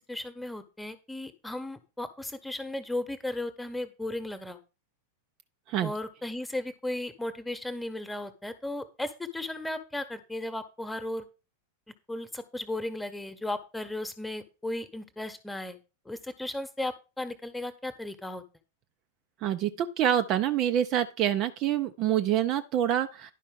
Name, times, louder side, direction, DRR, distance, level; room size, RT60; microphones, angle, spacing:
voice 1, 0.1-4.6 5.8-11.2 12.1-15.8 16.0-18.4, left 1 dB, 5° left, 10 dB, 1.3 m, -35 dB
voice 2, 19.4-23.3, right 10 dB, 40° right, 9 dB, 0.7 m, -26 dB
11.0 x 5.4 x 5.2 m, 0.30 s
figure-of-eight pair, 90°, 0 cm